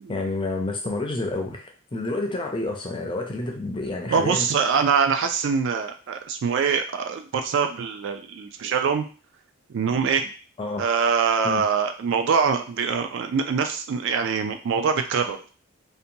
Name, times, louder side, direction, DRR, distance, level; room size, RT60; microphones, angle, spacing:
voice 1, 0.1-4.5 10.6-10.8 11.4-11.6, left 2 dB, 25° left, 2 dB, 0.4 m, -29 dB
voice 2, 4.1-9.1 9.7-10.3 10.8-15.5, right 6 dB, 55° right, 7 dB, 0.3 m, -24 dB
2.8 x 2.2 x 2.6 m, 0.37 s
head